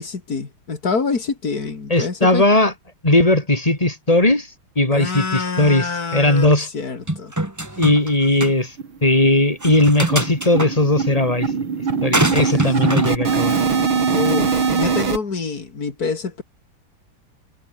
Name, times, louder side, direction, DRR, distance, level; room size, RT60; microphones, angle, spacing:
voice 1, 0.0-2.4 4.9-7.3 14.1-16.4, left 4 dB, 45° left, 3.1 m, -26 dB
voice 2, 1.9-2.7 3.0-4.5 4.8-6.7 7.8-8.7 9.0-11.5 12.0-13.6, left 1 dB, 15° left, 4.5 m, -17 dB
sound 1, 7.1-8.1 8.4-8.5 9.6-10.7 12.1-13.1, right 1 dB, 10° right, 1.9 m, -23 dB
sound 2, 7.9-8.0 8.3-8.4 8.8-9.0 9.2-15.2, right 5 dB, 70° right, 3.7 m, -22 dB
omnidirectional pair, 2.3 m